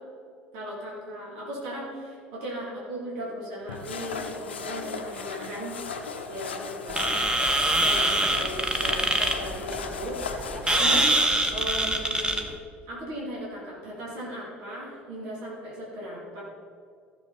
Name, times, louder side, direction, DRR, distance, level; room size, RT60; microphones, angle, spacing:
voice 1, 0.5-5.7 6.3-7.2 7.8-10.4 10.7-11.1 11.5-12.5 12.9-16.4, right 1 dB, 60° right, -5 dB, 2.8 m, -37 dB
sound 1, 3.7-11.3, left 5 dB, 75° left, 0.7 m, -36 dB
sound 2, 6.9-12.5, right 1 dB, 15° right, 1.2 m, -24 dB
15.0 x 6.9 x 4.1 m, 2.3 s
figure-of-eight pair, 65°, 6 cm